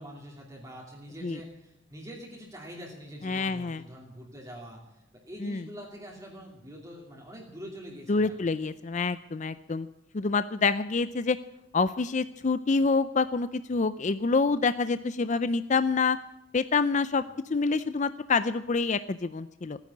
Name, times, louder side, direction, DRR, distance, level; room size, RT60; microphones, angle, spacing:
voice 1, 0.0-5.0 5.3-8.4, equal, 15° right, -2 dB, 2.8 m, -44 dB
voice 2, 3.2-3.8 5.4-5.7 8.1-9.9 10.1-11.4 11.7-16.2 16.5-17.2 17.5-19.8, left 4 dB, 40° left, 14 dB, 0.5 m, -27 dB
16.5 x 10.0 x 8.4 m, 0.87 s
head